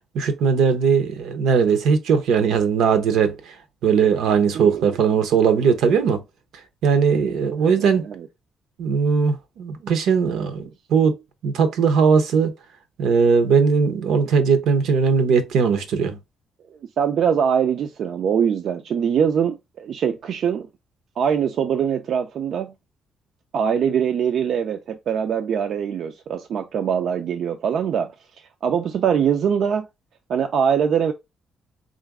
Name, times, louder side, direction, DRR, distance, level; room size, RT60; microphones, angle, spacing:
voice 1, 0.1-3.5 3.8-6.2 6.8-8.1 8.8-10.6 10.9-11.2 11.4-12.5 13.0-16.2, right 6 dB, 85° right, 0.7 m, -19 dB
voice 2, 7.6-8.3 17.0-20.7 21.2-22.7 23.5-28.1 28.6-29.9 30.3-31.1, right 7 dB, 60° right, 0.4 m, -22 dB
3.8 x 2.5 x 3.5 m
cardioid pair, 125°, 0 cm